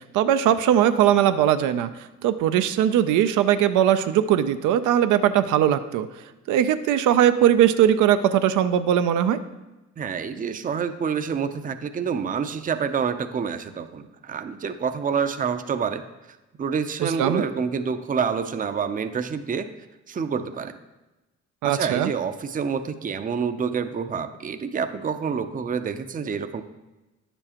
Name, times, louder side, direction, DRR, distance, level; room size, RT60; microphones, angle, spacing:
voice 1, 0.1-1.9 2.2-6.1 6.5-9.4 17.0-17.4 21.6-22.1, right 10 dB, 85° right, 10 dB, 0.5 m, -20 dB
voice 2, 10.0-16.0 16.3-19.7 20.1-20.8 21.6-26.6, right 6 dB, 30° right, 9 dB, 0.5 m, -27 dB
9.5 x 7.0 x 2.9 m, 1.1 s
cardioid pair, 90°, 30 cm